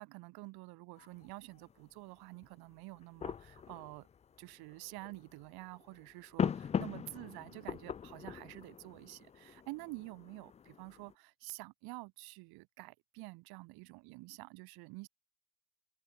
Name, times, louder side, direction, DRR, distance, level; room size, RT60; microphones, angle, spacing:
voice 1, 0.0-4.1 4.4-15.1, right 24 dB, 75° right, 7.3 m, -49 dB
sound 1, 1.0-11.1, left 7 dB, 20° left, 0.4 m, -41 dB
cardioid pair, 125°, 37 cm